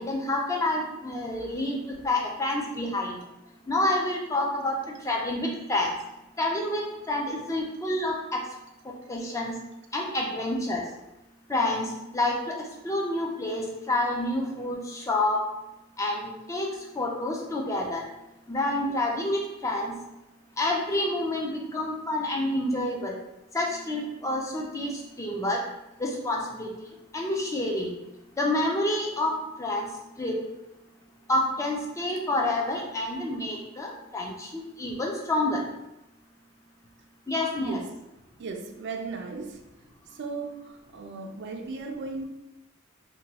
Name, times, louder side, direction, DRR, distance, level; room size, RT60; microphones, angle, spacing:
voice 1, 0.0-3.2 3.7-4.8 5.0-5.9 6.4-8.4 9.1-9.5 9.9-10.8 11.5-11.9 12.1-12.6 12.8-15.4 16.0-16.7 17.0-18.0 18.5-19.9 20.6-23.1 23.5-25.6 26.0-26.7 27.1-27.9 28.4-29.9 30.2-30.4 31.3-34.5 34.8-35.6 37.3-37.8, left 1 dB, 15° left, -1 dB, 0.4 m, -28 dB
voice 2, 4.6-5.0 6.0-6.1 7.4-7.8 9.0-9.1 10.2-10.4 37.6-38.0 38.4-39.6 40.1-42.2, right 4 dB, 55° right, 4 dB, 0.4 m, -38 dB
2.9 x 2.2 x 2.8 m, 0.92 s
head